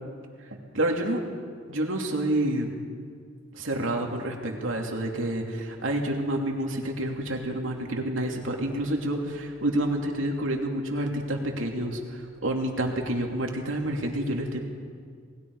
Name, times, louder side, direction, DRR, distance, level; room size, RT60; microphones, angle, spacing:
voice 1, 0.7-1.2 1.7-2.7 3.5-14.6, right 1 dB, 85° right, 1 dB, 2.8 m, -28 dB
28.5 x 20.0 x 4.8 m, 2.1 s
head